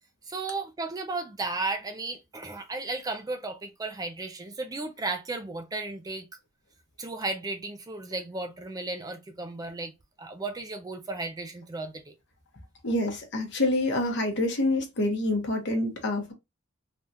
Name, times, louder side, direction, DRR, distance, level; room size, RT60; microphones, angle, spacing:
voice 1, 0.2-6.3 7.0-9.9 10.2-12.1, right 3 dB, 20° right, 0.3 m, -34 dB
voice 2, 12.8-16.3, left 1 dB, 55° left, 0.9 m, -27 dB
3.4 x 2.3 x 2.6 m
head